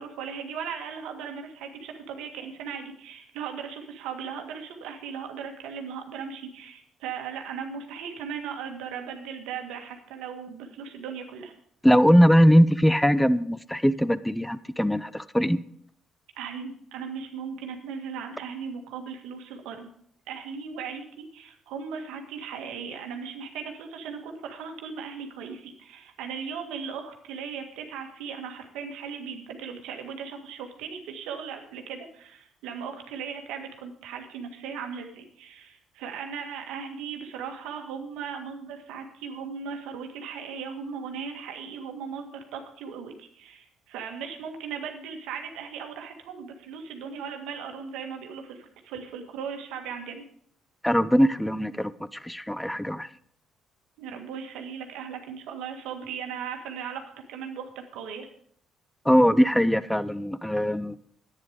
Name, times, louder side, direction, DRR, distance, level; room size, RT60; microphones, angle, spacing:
voice 1, 0.0-11.5 16.4-19.9 20.3-50.2 54.0-58.3, right 6 dB, 75° right, 4 dB, 1.8 m, -37 dB
voice 2, 11.8-15.6 50.8-53.1 59.1-61.0, equal, 5° left, 16 dB, 0.7 m, -21 dB
10.5 x 9.3 x 5.1 m, 0.64 s
hypercardioid pair, 55°, 0 cm